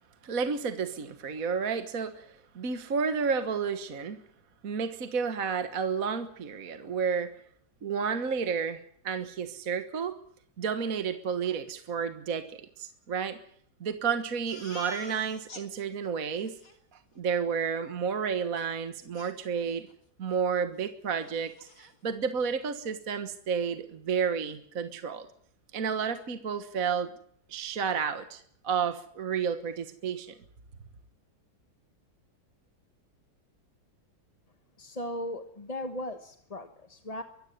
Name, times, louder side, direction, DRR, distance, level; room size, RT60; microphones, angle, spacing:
voice 1, 0.2-4.2 4.6-7.3 7.8-10.2 10.6-13.4 13.8-16.5 17.2-19.9 20.2-25.3 25.7-27.1 27.5-30.3, right 6 dB, 50° right, 10 dB, 1.7 m, -31 dB
Crying sobbing, 14.5-15.6 16.0-16.1 16.4-16.8 18.6-18.7 19.1-19.9 20.3-20.5 20.8-20.9 21.2-21.9, left 2 dB, 45° left, 3.5 m, -46 dB
voice 2, 34.8-37.2, left 1 dB, 20° left, 8 dB, 1.2 m, -37 dB
23.5 x 15.0 x 9.5 m, 0.64 s
omnidirectional pair, 2.1 m